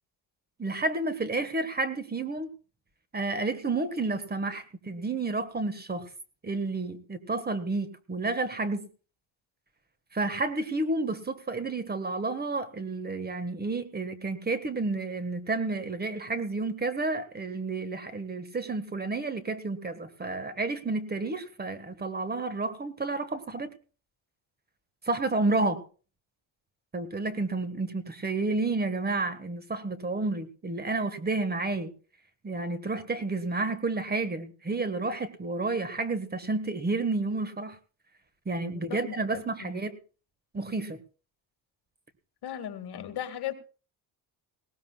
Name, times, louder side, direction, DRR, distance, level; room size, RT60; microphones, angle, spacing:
voice 1, 0.6-2.5 3.1-6.1 6.4-8.9 10.1-23.7 25.0-25.8 26.9-31.9 32.4-37.8 38.4-40.0 40.5-41.0, right 3 dB, 20° right, 11 dB, 1.5 m, -30 dB
voice 2, 38.6-39.7 42.4-43.5, left 11 dB, 65° left, 8 dB, 2.1 m, -37 dB
19.0 x 18.5 x 2.4 m, 0.37 s
cardioid pair, 130°, 42 cm